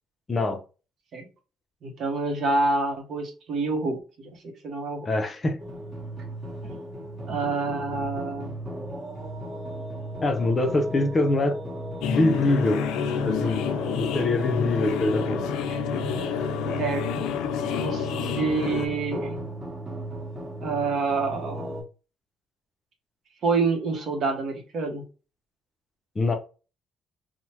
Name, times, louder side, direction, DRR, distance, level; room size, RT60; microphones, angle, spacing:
voice 1, 0.3-0.6 5.1-5.6 10.2-11.6 12.0-12.8 13.2-13.6 14.0-15.5 26.2-26.3, left 2 dB, 25° left, 0.5 m, -24 dB
voice 2, 1.8-5.1 6.6-6.8 7.3-8.5 15.7-15.8 16.8-17.2 17.7-18.1 18.3-19.4 20.6-21.8 23.4-25.0, right 3 dB, 55° right, 0.8 m, -27 dB
sound 1, 5.6-21.8, right 1 dB, 25° right, 1.1 m, -36 dB
sound 2, 12.0-18.9, left 8 dB, 90° left, 0.3 m, -29 dB
3.2 x 2.1 x 2.8 m
cardioid pair, 115°, 0 cm